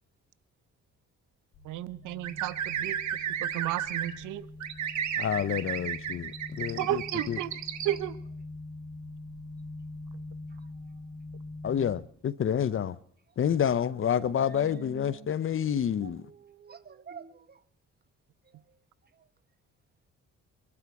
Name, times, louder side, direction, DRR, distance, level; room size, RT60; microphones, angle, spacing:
sound 1, 1.5-11.9, left 2 dB, 75° left, 3.6 m, -44 dB
voice 1, 1.6-3.0 3.4-4.5 6.8-7.5 7.8-8.2, right 14 dB, 85° right, 0.7 m, -32 dB
sound 2, 2.2-4.1 4.6-8.0, right 9 dB, 70° right, 1.5 m, -33 dB
voice 2, 5.2-7.0 7.3-7.4 11.6-13.0 13.4-16.2, left 8 dB, 45° left, 0.7 m, -28 dB
voice 3, 14.4-15.3 16.0-17.6, right 7 dB, 35° right, 1.0 m, -47 dB
23.0 x 12.0 x 4.7 m
cardioid pair, 90°, 30 cm